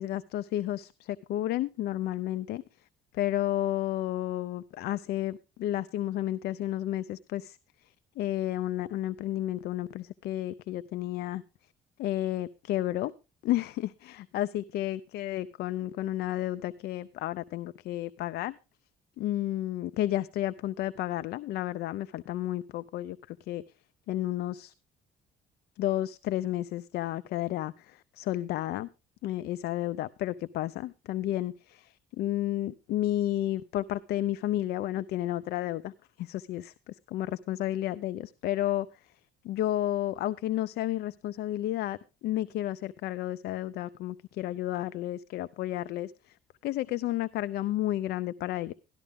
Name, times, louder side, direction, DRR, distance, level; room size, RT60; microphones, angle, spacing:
voice 1, 0.0-2.6 3.1-11.4 12.0-13.1 13.4-18.6 19.2-23.6 24.1-24.7 25.8-28.9 29.2-35.9 36.2-39.1 39.4-46.4 46.6-48.7, left 14 dB, 70° left, 0.5 m, -32 dB
13.0 x 12.0 x 3.6 m
cardioid pair, 110°, 17 cm